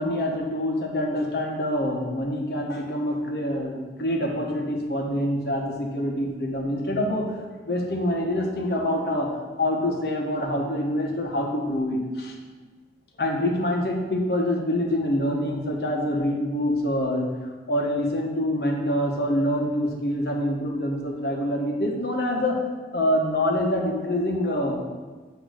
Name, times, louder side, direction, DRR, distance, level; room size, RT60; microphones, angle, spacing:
voice 1, 0.0-7.2 7.6-9.3 9.6-12.3 13.2-17.3 17.7-22.6 22.9-24.8, left 1 dB, 65° left, 0 dB, 1.1 m, -25 dB
8.2 x 3.0 x 6.3 m, 1.4 s
head